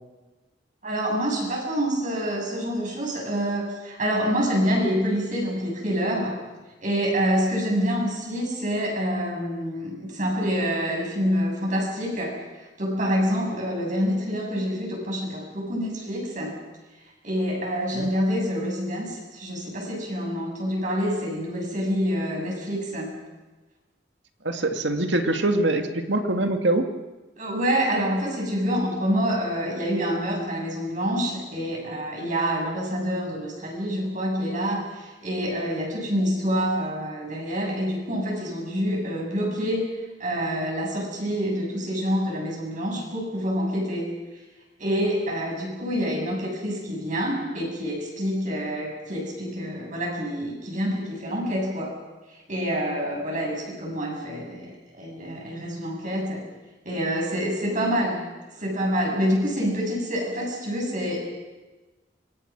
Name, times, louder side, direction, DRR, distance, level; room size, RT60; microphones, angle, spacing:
voice 1, 0.8-6.4 6.8-12.4 12.8-16.6 17.2-23.2 27.4-39.9 40.2-44.1 44.8-52.0 52.5-56.4 56.8-58.2 58.6-61.2, equal, 45° right, -1 dB, 7.8 m, -27 dB
voice 2, 24.4-26.9, right 2 dB, 80° right, 5 dB, 2.2 m, -23 dB
26.0 x 22.0 x 6.2 m, 1.2 s
head